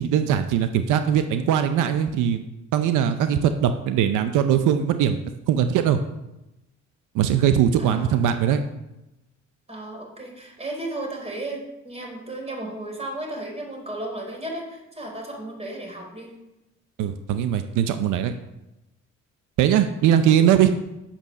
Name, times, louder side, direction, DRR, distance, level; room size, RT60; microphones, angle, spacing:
voice 1, 0.0-2.4 2.7-5.2 5.5-6.0 7.1-8.6 17.0-18.3 19.6-20.7, right 9 dB, 90° right, 9 dB, 0.7 m, -20 dB
voice 2, 7.8-8.2 9.7-16.4 20.4-20.7, right 1 dB, 20° right, 0 dB, 4.0 m, -34 dB
8.8 x 7.1 x 6.5 m, 0.96 s
cardioid pair, 90°, 30 cm